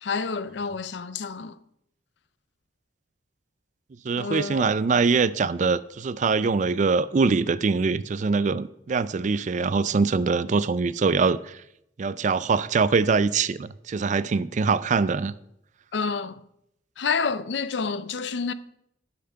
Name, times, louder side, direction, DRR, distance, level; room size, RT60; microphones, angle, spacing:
voice 1, 0.0-1.6 4.2-4.7 15.9-16.4 17.0-18.5, left 5 dB, 70° left, 0.5 m, -29 dB
voice 2, 4.0-11.6 12.0-15.3, right 4 dB, 40° right, 0.4 m, -23 dB
12.0 x 5.8 x 5.7 m
head